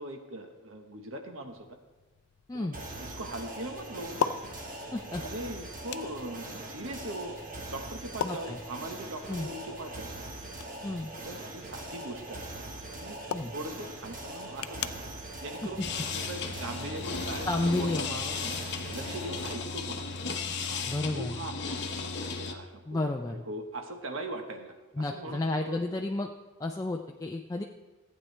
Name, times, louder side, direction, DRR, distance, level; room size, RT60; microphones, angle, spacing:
voice 1, 0.0-1.8 2.5-4.2 5.2-7.3 7.7-10.1 11.2-12.6 12.9-13.2 13.5-15.0 15.4-15.9 16.2-20.0 20.3-20.9 21.1-26.0, right 1 dB, 65° right, 5 dB, 1.2 m, -41 dB
sound 1, 1.5-16.7, left 7 dB, 80° left, 0.4 m, -42 dB
sound 2, 2.7-19.5, right 1 dB, 40° right, 1.3 m, -42 dB
voice 2, 4.9-5.2 8.2-8.6 9.3-9.5 10.8-11.1 13.3-13.5 17.4-18.0 20.9-21.4 22.9-23.4 25.0-26.3 26.6-27.6, left 2 dB, 15° left, 2 dB, 0.4 m, -31 dB
sound 3, 15.8-22.5, left 4 dB, 50° left, 0.8 m, -35 dB
15.0 x 8.6 x 3.3 m, 1.2 s
head